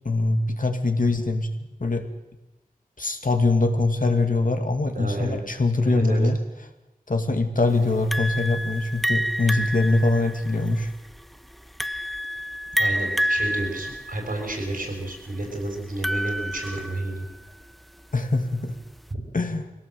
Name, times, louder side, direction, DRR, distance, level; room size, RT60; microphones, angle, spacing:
voice 1, 0.0-2.1 3.0-6.4 7.1-10.9 18.1-18.7 19.3-19.7, left 2 dB, 65° left, 5 dB, 2.3 m, -23 dB
voice 2, 4.9-5.4 5.8-6.2 12.8-17.3 19.1-19.2, right 1 dB, 75° right, 1 dB, 6.9 m, -31 dB
sound 1, 8.1-17.4, equal, ahead, 0.6 m, -29 dB
22.0 x 17.5 x 7.8 m, 1.0 s
wide cardioid pair, 60°, 15 cm